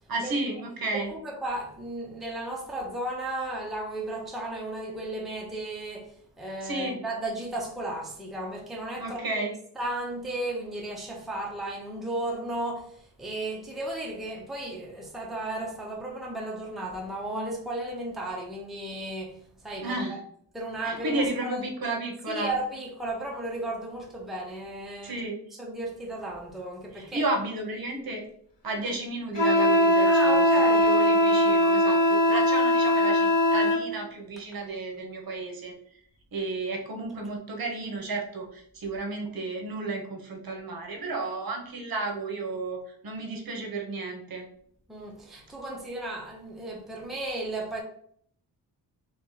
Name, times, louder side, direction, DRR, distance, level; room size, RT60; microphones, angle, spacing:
voice 1, 0.1-1.1 6.6-7.0 9.0-9.6 19.8-20.2 20.8-22.5 25.0-25.4 26.9-28.2 28.6-30.4 30.7-35.7 36.3-44.4, right 2 dB, 55° right, 1.0 m, -32 dB
voice 2, 0.9-9.2 9.8-19.4 19.6-20.2 20.5-21.6 22.3-27.2 30.0-30.9 44.9-47.8, right 1 dB, ahead, 0.7 m, -34 dB
Wind instrument woodwind instrument, 29.4-33.8, equal, 75° left, 1.1 m, -21 dB
3.2 x 3.0 x 3.8 m
cardioid pair, 110°, 42 cm